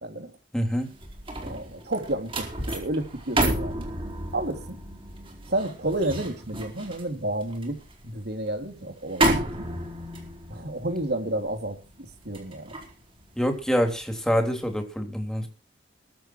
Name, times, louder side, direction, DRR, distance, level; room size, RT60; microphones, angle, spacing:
voice 1, 0.0-0.3 1.4-3.9 4.3-4.8 5.5-9.7 10.5-11.8 12.2-12.7, right 1 dB, 60° right, 3.1 m, -31 dB
voice 2, 0.5-0.9 13.4-15.5, equal, 5° left, 3.2 m, -26 dB
sound 1, 0.8-14.1 14.5-14.8, right 1 dB, 30° right, 4.5 m, -31 dB
22.5 x 8.1 x 4.6 m
head